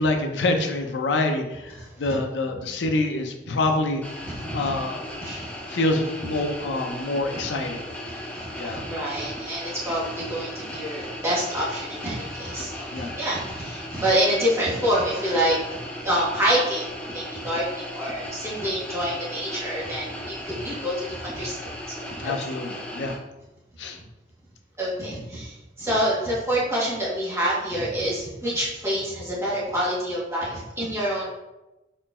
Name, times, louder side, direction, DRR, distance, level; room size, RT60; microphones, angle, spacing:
voice 1, 0.0-4.0 4.5-5.0 5.7-7.8 8.6-8.8 12.9-13.2 22.2-23.2 23.8-24.0, left 2 dB, 85° left, 5 dB, 0.5 m, -26 dB
sound 1, 4.0-23.2, equal, 10° left, 0.5 m, -37 dB
voice 2, 5.2-5.7 8.3-15.6 16.0-22.2 24.8-31.3, equal, 15° right, -7 dB, 1.2 m, -27 dB
4.3 x 3.0 x 2.3 m, 1.0 s
head